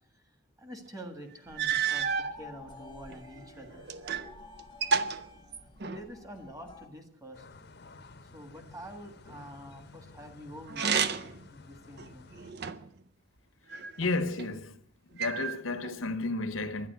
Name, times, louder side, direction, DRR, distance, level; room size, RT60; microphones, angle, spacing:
voice 1, 0.6-3.8 5.9-7.5 8.2-12.3, equal, 15° right, 1.6 m, -47 dB
sound 1, 1.0-1.1 1.6-2.3 3.1-4.3 4.6-6.1 10.7-11.4 12.0-13.0 13.7-14.5 15.2-16.0, right 6 dB, 55° right, 0.6 m, -31 dB
sound 2, 1.5-6.9, left 3 dB, 25° left, 0.9 m, -51 dB
sound 3, 7.3-12.5, left 3 dB, 55° left, 0.8 m, -53 dB
voice 2, 14.0-14.8 15.1-16.9, left 3 dB, 90° left, 1.1 m, -32 dB
11.5 x 10.0 x 9.3 m
head